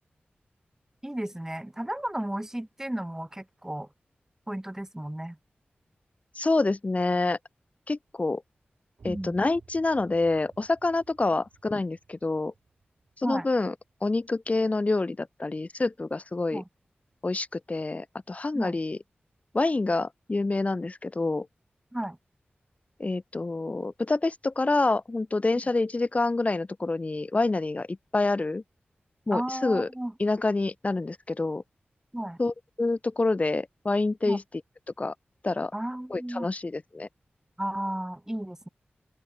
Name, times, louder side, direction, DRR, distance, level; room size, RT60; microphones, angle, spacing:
voice 1, 1.0-3.9 4.5-5.4 9.1-9.4 13.2-13.5 16.5-16.6 18.5-18.8 21.9-22.2 29.3-30.1 32.1-32.4 34.2-34.4 35.7-36.5 37.6-38.7, right 1 dB, 10° right, 1.3 m, -33 dB
voice 2, 6.3-7.4 7.9-8.4 9.0-12.5 13.2-13.7 14.0-16.6 17.2-19.0 19.5-21.5 23.0-28.6 29.3-29.9 30.2-31.6 32.4-34.4 35.0-35.1 35.4-35.7 36.1-37.1, left 3 dB, 35° left, 0.8 m, -27 dB
sound 1, 9.0-14.6, right 5 dB, 80° right, 4.2 m, -55 dB
open air
cardioid pair, 60°, 4 cm